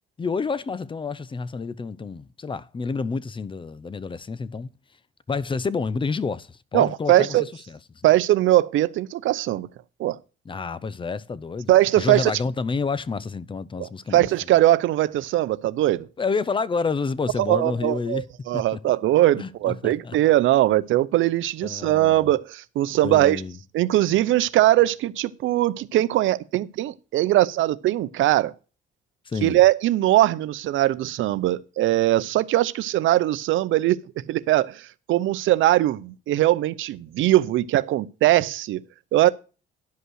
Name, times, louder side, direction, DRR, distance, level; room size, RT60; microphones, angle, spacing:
voice 1, 0.2-4.7 5.3-8.1 10.5-14.3 16.2-18.2 18.5-18.8 19.4-20.1 21.6-22.2 23.0-23.6 29.3-29.6, left 4 dB, 25° left, 0.6 m, -29 dB
voice 2, 6.7-7.4 8.0-9.7 10.0-10.2 11.7-12.3 13.8-16.1 17.5-23.4 23.7-28.5 29.4-34.0 34.3-38.8 39.1-39.3, right 14 dB, 80° right, 0.6 m, -21 dB
11.5 x 5.4 x 6.3 m
cardioid pair, 90°, 20 cm